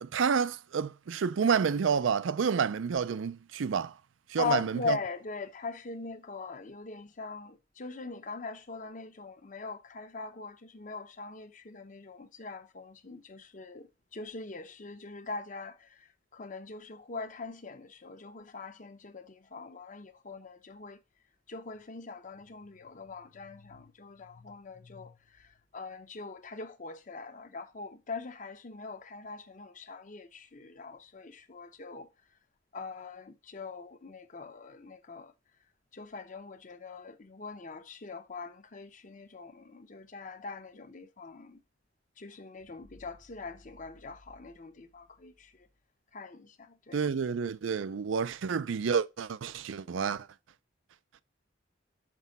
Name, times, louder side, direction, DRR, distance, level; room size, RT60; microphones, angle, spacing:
voice 1, 0.0-3.9 4.3-5.0 46.9-50.3, right 6 dB, 75° right, 0.4 m, -29 dB
voice 2, 4.4-21.0 21.5-32.1 32.7-35.3 35.9-41.6 42.2-45.5 46.1-47.0, left 4 dB, 40° left, 0.8 m, -41 dB
6.1 x 5.5 x 4.0 m
head